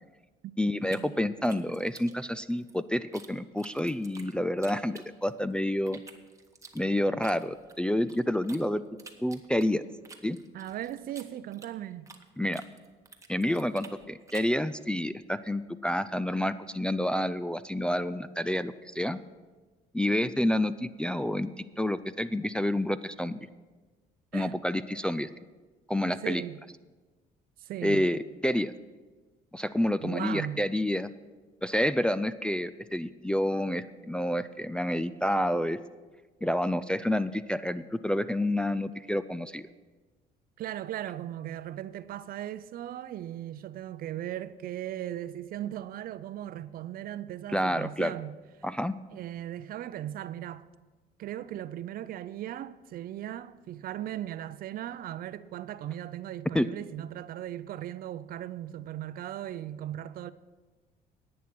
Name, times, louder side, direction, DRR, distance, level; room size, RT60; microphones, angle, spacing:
voice 1, 0.6-6.0 6.7-8.8 9.2-9.8 10.2-10.4 12.4-12.6 13.3-19.2 19.9-23.4 24.3-25.3 25.9-26.4 27.8-28.7 29.5-31.1 31.6-35.8 36.4-39.6 47.5-48.1 48.6-49.0 56.5-56.7, left 1 dB, 5° left, 0.3 m, -29 dB
sound 1, 0.9-3.3 3.6-5.5 5.9-8.6 9.0-12.3 12.5-14.6, right 4 dB, 20° right, 1.1 m, -51 dB
voice 2, 10.5-12.1 24.3-24.5 26.2-26.6 27.6-28.1 30.0-30.6 40.6-48.4 49.1-50.6 51.2-60.3, right 12 dB, 60° right, 0.5 m, -38 dB
11.0 x 8.7 x 6.0 m
cardioid pair, 110°, 17 cm